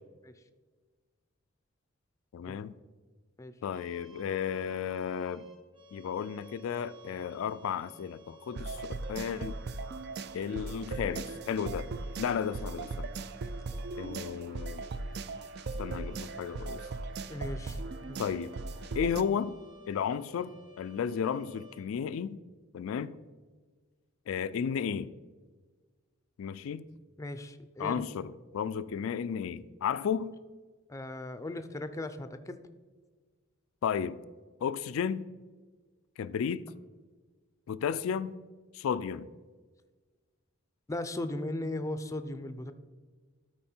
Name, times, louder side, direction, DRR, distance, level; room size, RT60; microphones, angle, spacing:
voice 1, 2.3-2.7 3.6-5.5 5.9-9.6 10.3-11.9 12.2-13.1 14.0-14.8 15.8-16.8 18.2-18.5 19.0-19.6 19.9-22.4 22.7-23.2 24.3-25.1 26.4-26.8 27.8-30.4 33.8-34.2 34.6-35.3 36.2-36.6 37.7-38.4 38.7-39.3, left 7 dB, 80° left, 0.3 m, -33 dB
sound 1, 3.7-21.8, equal, 25° right, 1.8 m, -55 dB
sound 2, 8.6-19.2, right 3 dB, 55° right, 0.4 m, -38 dB
voice 2, 17.3-17.8 18.1-18.2 27.2-28.0 30.9-32.6 40.9-42.7, left 1 dB, 15° left, 0.4 m, -37 dB
12.5 x 4.7 x 4.4 m
head